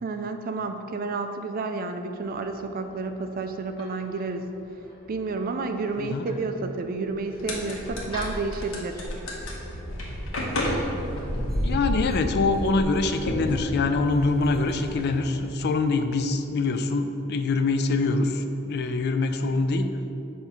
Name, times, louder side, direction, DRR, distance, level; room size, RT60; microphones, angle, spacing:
voice 1, 0.0-4.5 5.1-9.1, right 3 dB, 45° right, 7 dB, 0.4 m, -30 dB
sound 1, 2.0-12.6, left 1 dB, 25° left, 1.2 m, -46 dB
voice 2, 6.0-6.3 11.6-19.9, left 3 dB, 50° left, 7 dB, 0.4 m, -24 dB
sound 2, 7.3-15.4, left 1 dB, 85° left, 1.2 m, -34 dB
sound 3, 7.5-15.0, equal, ahead, 1.3 m, -33 dB
6.8 x 2.8 x 5.7 m, 2.9 s
head